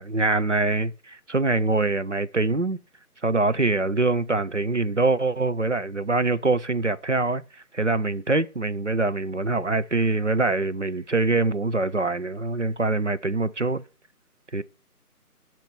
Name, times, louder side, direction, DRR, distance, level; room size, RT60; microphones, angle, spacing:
voice 1, 0.0-2.8 3.2-13.8 14.5-14.6, right 3 dB, 50° right, 0.5 m, -24 dB
12.0 x 4.5 x 6.7 m
figure-of-eight pair, 175°, 46 cm